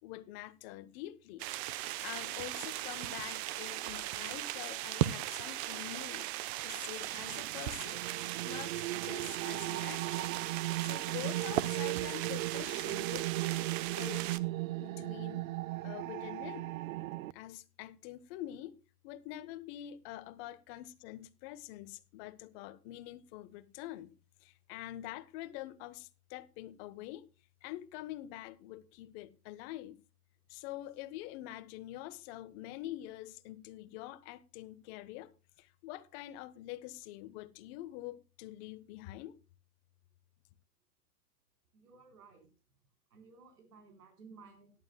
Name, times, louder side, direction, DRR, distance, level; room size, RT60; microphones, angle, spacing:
voice 1, 0.0-1.5 2.0-8.0 8.4-10.4 10.8-13.2 13.5-14.4 14.8-15.5 15.8-16.7 17.3-18.8 19.0-24.1 24.4-27.3 27.6-30.0 30.5-39.4, left 15 dB, 40° left, 1.2 m, -46 dB
sound 1, 1.4-14.4, right 15 dB, 45° right, 0.9 m, -38 dB
sound 2, 7.1-17.3, right 18 dB, 60° right, 0.5 m, -37 dB
voice 2, 41.7-42.5 43.1-44.7, right 4 dB, 85° right, 4.3 m, -56 dB
17.5 x 11.5 x 2.3 m
hypercardioid pair, 130°, 45 cm